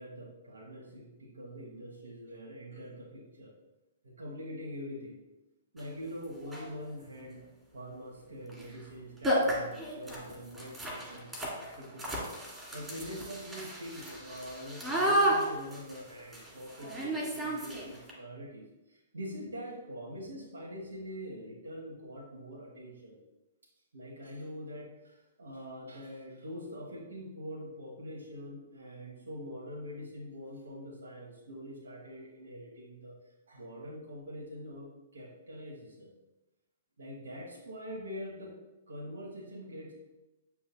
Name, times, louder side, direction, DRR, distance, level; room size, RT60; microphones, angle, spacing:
voice 1, 0.0-3.5 4.0-5.2 5.7-11.3 11.6-12.3 12.7-23.2 23.9-33.1 33.5-36.1 37.0-38.5 38.9-39.9, equal, 70° right, -2 dB, 1.4 m, -44 dB
sound 1, 5.8-5.9 6.4-6.8 8.5-8.7 8.9-9.0 9.2-18.1, right 1 dB, 5° right, 1.9 m, -33 dB
8.3 x 5.9 x 2.3 m, 1.0 s
figure-of-eight pair, 115°, 0 cm